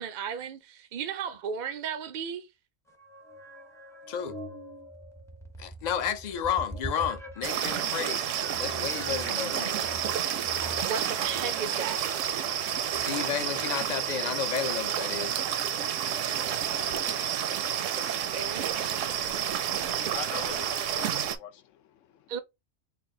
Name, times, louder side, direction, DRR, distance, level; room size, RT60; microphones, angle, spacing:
voice 1, 0.0-2.5 10.8-12.0 18.3-18.7 22.3-22.4, right 7 dB, 60° right, 0.5 m, -34 dB
sound 1, 2.9-7.8 8.4-15.0, equal, 5° left, 0.5 m, -44 dB
voice 2, 5.6-8.2 8.6-9.9 13.0-15.3, left 8 dB, 55° left, 0.5 m, -32 dB
sound 2, 7.4-21.4, right 9 dB, 80° right, 0.9 m, -30 dB
voice 3, 19.7-22.3, left 9 dB, 80° left, 0.9 m, -43 dB
3.2 x 2.4 x 3.7 m
omnidirectional pair, 1.3 m